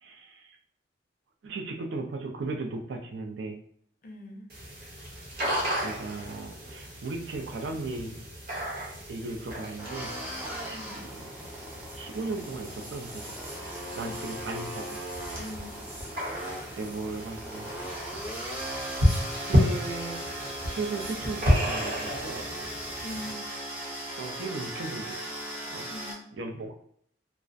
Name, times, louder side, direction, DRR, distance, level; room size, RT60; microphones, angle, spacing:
voice 1, 0.0-0.6 1.4-3.6 5.1-5.4 5.8-8.2 9.1-10.1 10.6-11.3 11.9-13.4 14.0-15.0 16.8-17.7 18.1-18.2 19.4-20.2 20.7-22.6 24.2-25.3 25.7-25.9 26.3-26.7, right 3 dB, 85° right, 4 dB, 0.4 m, -36 dB
voice 2, 4.0-4.5 10.7-11.1 13.9-14.1 15.3-15.8 23.0-23.4 25.9-26.2, left 1 dB, 50° left, 2 dB, 0.5 m, -42 dB
sound 1, 4.5-23.3, left 1 dB, 55° right, 0.8 m, -32 dB
sound 2, 9.8-26.1, right 1 dB, 10° right, 0.5 m, -38 dB
2.4 x 2.0 x 2.5 m, 0.66 s
head